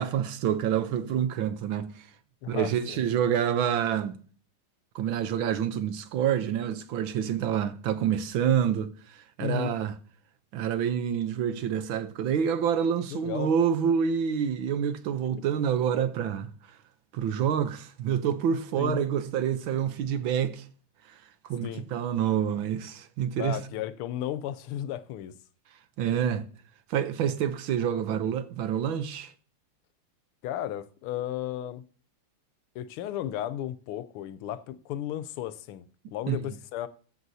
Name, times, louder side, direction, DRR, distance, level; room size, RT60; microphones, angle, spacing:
voice 1, 0.0-2.1 2.5-4.2 4.9-9.9 10.5-16.5 17.1-20.7 21.1-21.2 21.4-23.6 26.0-26.5 26.9-29.3 36.3-36.4, right 8 dB, 70° right, 1.4 m, -27 dB
voice 2, 2.4-3.0 9.4-9.7 13.1-13.5 18.8-19.0 21.6-21.8 23.4-25.3 30.4-31.8 32.7-36.9, left 12 dB, 80° left, 1.5 m, -34 dB
14.0 x 7.9 x 2.7 m
omnidirectional pair, 2.4 m